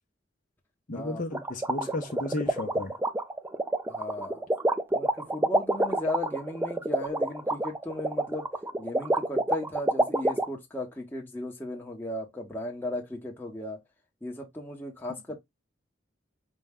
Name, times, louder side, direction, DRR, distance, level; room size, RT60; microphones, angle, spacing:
voice 1, 0.9-3.0, left 2 dB, 45° left, 0.7 m, -33 dB
sound 1, 1.3-10.4, right 1 dB, 10° right, 0.4 m, -26 dB
voice 2, 3.9-4.4 4.9-8.5 8.8-13.8 14.2-15.4, left 1 dB, 10° left, 1.0 m, -36 dB
5.2 x 2.2 x 3.5 m
head